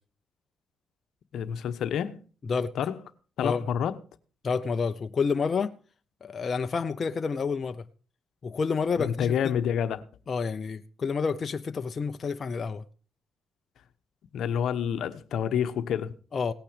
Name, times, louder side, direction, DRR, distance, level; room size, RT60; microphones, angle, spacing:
voice 1, 1.3-2.2 2.7-3.0 3.4-4.0 9.0-10.0 14.3-16.1, left 8 dB, 75° left, 1.1 m, -28 dB
voice 2, 4.4-5.7 6.2-7.8 8.4-9.5 10.3-12.8 16.3-16.5, left 5 dB, 40° left, 0.8 m, -29 dB
18.0 x 9.0 x 5.1 m
cardioid pair, 90°, 0 cm